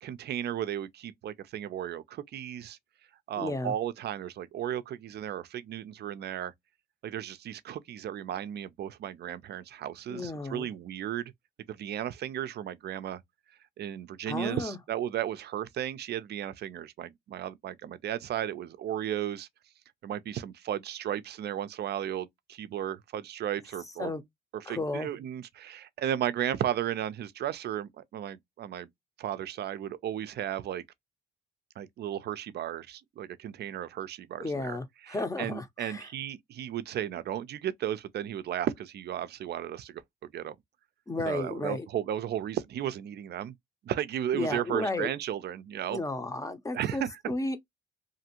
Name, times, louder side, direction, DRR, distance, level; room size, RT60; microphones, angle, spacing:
voice 1, 0.0-2.8 3.3-6.5 7.0-11.3 11.7-13.2 13.8-19.5 20.0-24.1 24.5-28.9 29.2-30.8 31.8-34.8 35.0-40.0 40.3-40.6 41.3-43.5 43.8-46.0 46.7-47.1, right 10 dB, 55° right, 0.4 m, -34 dB
voice 2, 3.4-3.7 10.1-10.7 14.3-14.8 24.0-24.2 24.6-25.1 34.4-36.1 41.1-41.9 44.3-45.1 45.9-47.6, left 2 dB, 15° left, 0.6 m, -33 dB
2.7 x 2.4 x 2.8 m
cardioid pair, 90°, 20 cm